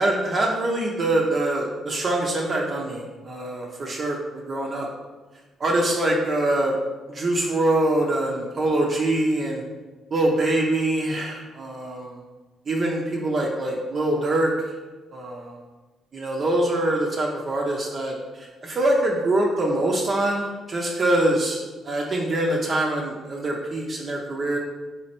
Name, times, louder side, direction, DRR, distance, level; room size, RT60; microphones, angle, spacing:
voice 1, 0.0-4.9 5.6-6.8 7.1-9.6 10.1-12.2 12.7-14.5 15.1-15.6 16.1-24.6, right 1 dB, 45° right, -1 dB, 0.6 m, -24 dB
3.4 x 3.1 x 4.3 m, 1.2 s
cardioid pair, 90°, 0 cm